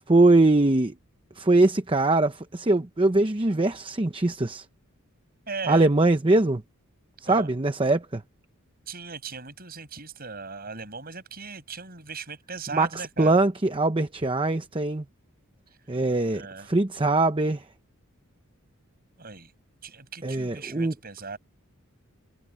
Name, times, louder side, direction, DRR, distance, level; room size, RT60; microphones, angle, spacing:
voice 1, 0.1-0.9 1.4-4.6 5.7-6.6 7.2-8.2 12.7-15.0 15.9-17.6 20.2-20.9, right 2 dB, 25° right, 0.8 m, -22 dB
voice 2, 5.5-5.9 7.3-7.5 8.9-13.4 16.3-16.7 19.2-19.5 19.8-21.4, right 4 dB, 45° right, 7.6 m, -38 dB
head